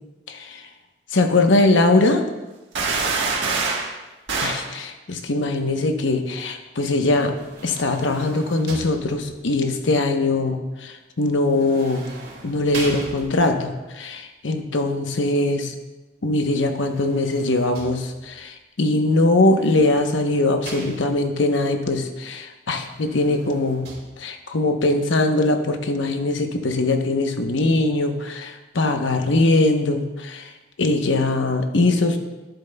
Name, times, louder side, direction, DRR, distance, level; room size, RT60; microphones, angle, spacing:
voice 1, 0.3-0.6 1.1-2.2 4.4-7.3 7.6-12.1 12.4-15.7 16.2-23.9 24.2-30.5 30.8-32.2, left 2 dB, 80° left, 5 dB, 0.9 m, -21 dB
sound 1, 2.7-3.9 4.3-4.6, right 4 dB, 80° right, 1.4 m, -23 dB
sound 2, 7.1-9.6 11.5-13.7 16.6-18.4 19.4-21.4 22.8-24.0, right 2 dB, 55° right, 2.0 m, -39 dB
11.5 x 10.5 x 2.2 m, 1.1 s
head